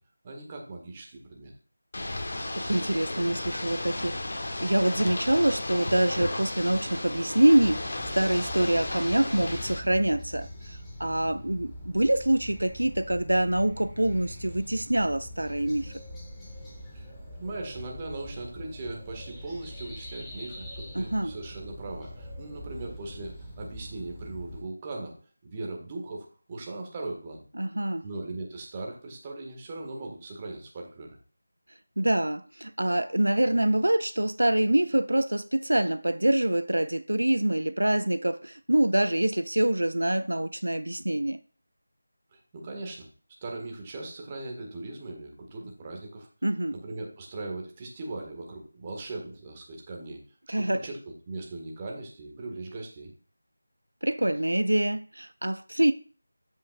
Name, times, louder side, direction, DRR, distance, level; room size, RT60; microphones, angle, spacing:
voice 1, 0.2-1.5 16.9-25.1 25.4-27.4 28.0-31.2 42.3-43.1 43.4-46.3 46.7-50.2 50.6-51.0 51.3-53.1, right 2 dB, 20° right, 1.6 m, -39 dB
Ocean / Boat Water vehicle, 1.9-9.8, left 2 dB, 50° left, 1.3 m, -34 dB
voice 2, 2.5-15.9 20.9-21.3 27.6-28.1 32.0-41.4 46.4-46.7 50.5-50.8 54.0-55.9, right 1 dB, 80° right, 0.4 m, -25 dB
sound 1, 7.6-24.6, equal, 5° left, 1.7 m, -43 dB
14.0 x 5.6 x 2.4 m
figure-of-eight pair, 165°, 0 cm